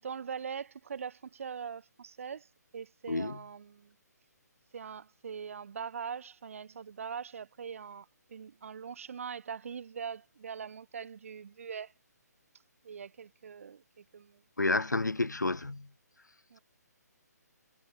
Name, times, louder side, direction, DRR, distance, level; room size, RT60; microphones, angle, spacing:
voice 1, 0.0-3.9 4.7-11.9 12.8-14.4 16.5-16.6, right 7 dB, 50° right, 1.5 m, -42 dB
voice 2, 3.1-3.4 14.6-15.9, left 2 dB, 90° left, 0.4 m, -30 dB
figure-of-eight pair, 140°, 9 cm